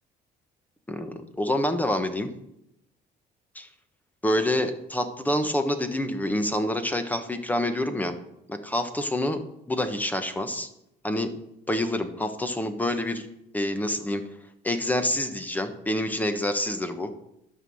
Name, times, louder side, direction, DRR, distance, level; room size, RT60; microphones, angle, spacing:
voice 1, 0.9-2.3 3.5-3.7 4.2-8.1 8.5-9.4 9.7-10.7 11.0-11.3 11.7-13.3 13.5-14.2 14.6-17.1, left 1 dB, 10° left, 9 dB, 1.3 m, -27 dB
11.5 x 5.7 x 7.8 m, 0.80 s
cardioid pair, 110°, 17 cm